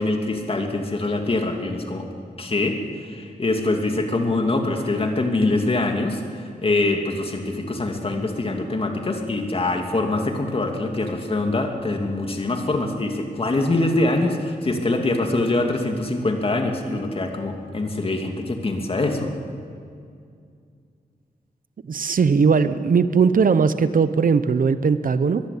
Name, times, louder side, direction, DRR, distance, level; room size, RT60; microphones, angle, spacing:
voice 1, 0.0-2.1 2.4-19.3, left 2 dB, 35° left, 3 dB, 2.5 m, -24 dB
voice 2, 21.9-25.4, right 5 dB, 60° right, 12 dB, 0.9 m, -19 dB
23.5 x 21.5 x 8.6 m, 2.3 s
wide cardioid pair, 155°, 16 cm